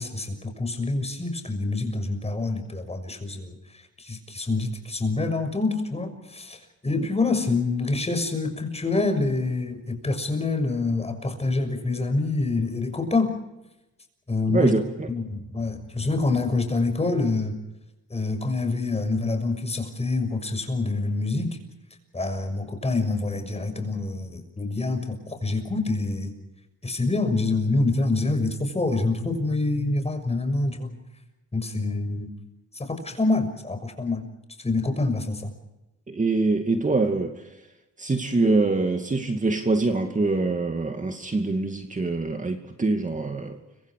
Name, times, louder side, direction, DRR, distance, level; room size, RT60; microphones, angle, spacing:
voice 1, 0.0-3.6 4.0-6.6 6.8-13.3 14.3-14.8 15.1-17.6 18.1-21.6 22.1-26.3 26.8-31.0 31.5-32.3 32.7-34.3 34.6-35.5, left 3 dB, 20° left, 7 dB, 6.5 m, -26 dB
voice 2, 14.5-15.1 36.1-37.4 38.0-43.6, right 3 dB, 25° right, 5 dB, 2.5 m, -24 dB
30.0 x 25.0 x 5.0 m, 0.97 s
cardioid pair, 90°, 30 cm